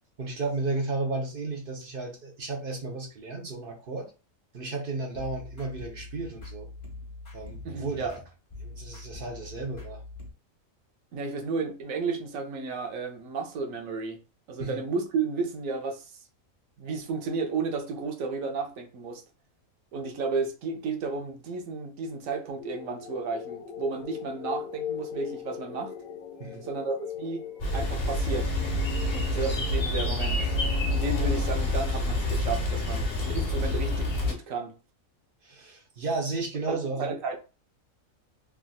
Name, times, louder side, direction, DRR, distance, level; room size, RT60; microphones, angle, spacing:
voice 1, 0.2-4.1 4.5-6.7 7.3-8.2 8.6-10.0 14.6-14.8 26.4-26.6 35.4-37.1, right 3 dB, 50° right, 0.9 m, -33 dB
sound 1, 5.1-10.3, left 2 dB, 30° left, 0.7 m, -43 dB
voice 2, 7.6-8.1 11.1-14.2 14.5-16.1 16.8-19.2 19.9-25.9 26.6-27.4 27.7-28.5 29.1-30.5 30.9-34.7 36.7-37.4, right 4 dB, 80° right, 1.1 m, -32 dB
sound 2, 22.6-31.5, left 8 dB, 80° left, 1.2 m, -40 dB
sound 3, 27.6-34.3, left 1 dB, 50° left, 1.0 m, -27 dB
3.4 x 2.6 x 2.3 m
omnidirectional pair, 1.4 m